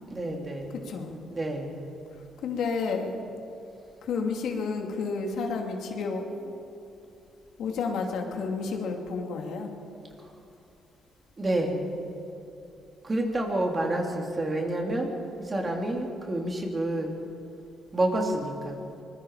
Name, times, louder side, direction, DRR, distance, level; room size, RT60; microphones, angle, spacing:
voice 1, 0.1-0.8 1.3-1.8 11.4-11.9 13.0-15.1 15.4-17.1 17.9-18.8, right 1 dB, 30° right, 1 dB, 3.7 m, -29 dB
voice 2, 2.4-3.1 4.0-6.5 7.6-9.7, left 4 dB, 75° left, 2 dB, 2.9 m, -31 dB
24.0 x 21.0 x 5.1 m, 2.7 s
cardioid pair, 90°, 0 cm